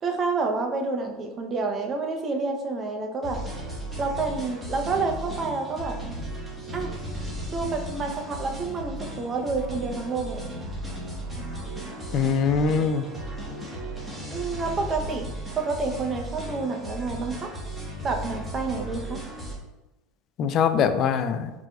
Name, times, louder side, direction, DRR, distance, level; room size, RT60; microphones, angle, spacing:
voice 1, 0.0-3.4 4.0-6.0 6.7-6.9 7.5-10.5 14.3-15.3 15.6-17.5 18.0-19.2, right 3 dB, 30° right, 3 dB, 0.7 m, -29 dB
sound 1, 3.2-19.5, right 1 dB, 15° right, 1.3 m, -35 dB
voice 2, 12.1-13.0 20.4-21.5, left 6 dB, 45° left, 10 dB, 0.4 m, -22 dB
4.7 x 3.6 x 2.3 m, 1.0 s
supercardioid pair, 120°, 0 cm